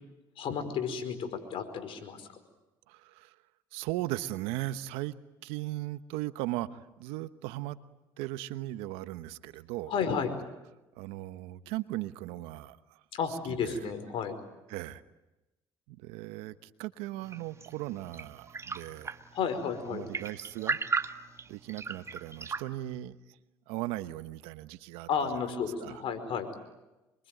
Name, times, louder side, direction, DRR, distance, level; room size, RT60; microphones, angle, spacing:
voice 1, 0.4-2.3 9.9-10.3 13.1-14.4 19.3-20.1 25.1-26.5, left 6 dB, 65° left, 9 dB, 5.1 m, -32 dB
voice 2, 2.9-3.3 3.7-5.1 5.4-7.8 8.2-9.9 11.0-12.8 13.6-13.8 14.7-15.0 15.9-19.1 19.9-20.8 21.5-23.2 23.7-25.1 25.8-25.9, right 16 dB, 90° right, 13 dB, 1.1 m, -37 dB
sound 1, 17.2-22.6, right 4 dB, 30° right, 1.6 m, -37 dB
26.5 x 23.5 x 9.2 m, 1.0 s
supercardioid pair, 75°, 10 cm